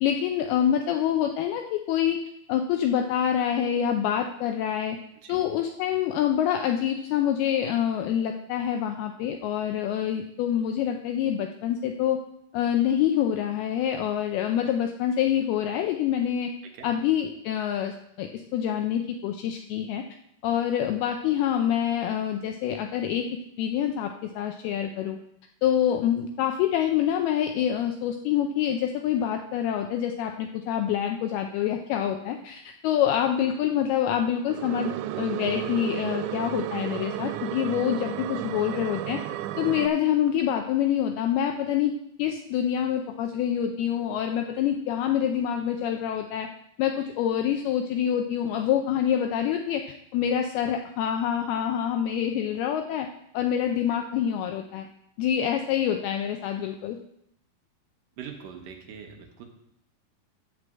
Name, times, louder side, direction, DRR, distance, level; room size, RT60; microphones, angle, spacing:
voice 1, 0.0-2.2 2.5-5.0 5.3-12.2 12.5-16.5 16.8-20.0 20.4-25.2 25.6-34.9 35.2-39.2 39.6-46.5 46.8-53.1 53.3-54.9 55.2-57.0, left 9 dB, 80° left, 5 dB, 2.3 m, -26 dB
sound 1, 34.5-39.9, right 13 dB, 90° right, 2.8 m, -33 dB
voice 2, 58.2-59.5, right 7 dB, 70° right, 3 dB, 2.3 m, -42 dB
11.0 x 4.9 x 7.6 m, 0.78 s
omnidirectional pair, 5.0 m